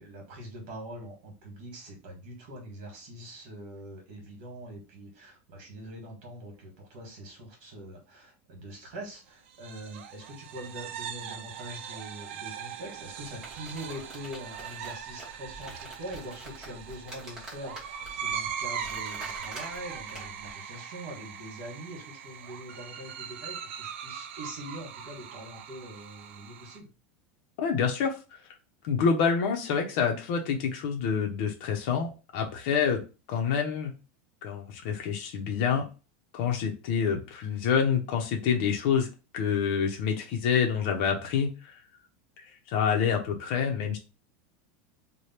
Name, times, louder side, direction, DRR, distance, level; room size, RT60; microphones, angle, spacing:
voice 1, 0.0-26.9, right 1 dB, 50° right, 1 dB, 1.6 m, -43 dB
sound 1, 9.5-26.8, right 8 dB, 75° right, 0.5 m, -40 dB
sound 2, 13.1-20.5, right 1 dB, 5° right, 1.1 m, -47 dB
voice 2, 27.6-28.1 28.8-33.0 33.3-33.9 34.4-35.8 36.3-39.1 39.3-41.7 42.7-44.0, left 6 dB, 50° left, 2 dB, 0.7 m, -27 dB
3.2 x 2.2 x 4.3 m, 0.32 s
supercardioid pair, 180°, 7 cm